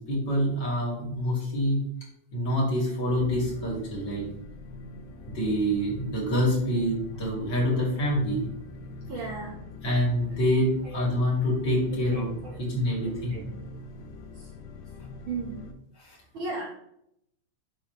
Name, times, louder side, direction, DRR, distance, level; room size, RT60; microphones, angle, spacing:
voice 1, 0.0-1.8 2.3-4.2 5.3-8.4 9.8-13.4 16.0-16.2, equal, 35° left, -5 dB, 3.1 m, -26 dB
sound 1, 3.1-15.7, left 2 dB, 90° left, 1.4 m, -43 dB
voice 2, 9.1-9.6 10.8-11.1 12.1-12.6 13.3-13.4 14.3-14.5 15.3-15.6 16.3-16.7, right 3 dB, 75° right, -3 dB, 1.1 m, -35 dB
12.0 x 4.3 x 3.1 m, 0.74 s
omnidirectional pair, 3.9 m